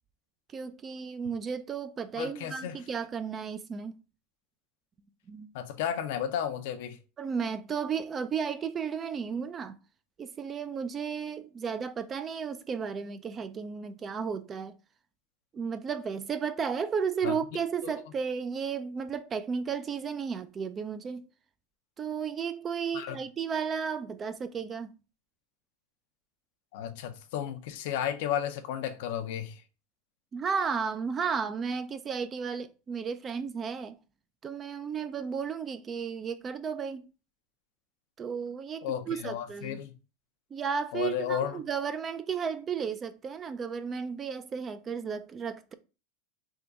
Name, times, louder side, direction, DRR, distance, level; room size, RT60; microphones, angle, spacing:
voice 1, 0.5-4.0 5.3-5.5 7.2-9.8 10.2-14.7 15.5-21.3 22.0-24.9 30.3-34.0 34.4-37.1 38.2-39.9 40.5-45.7, right 6 dB, 25° right, 0.3 m, -33 dB
voice 2, 2.2-2.8 5.5-7.0 17.2-17.3 17.8-17.9 22.9-23.2 26.7-29.6 38.8-39.9 40.9-41.6, left 9 dB, 70° left, 0.5 m, -33 dB
3.6 x 2.2 x 3.8 m
supercardioid pair, 130°, 0 cm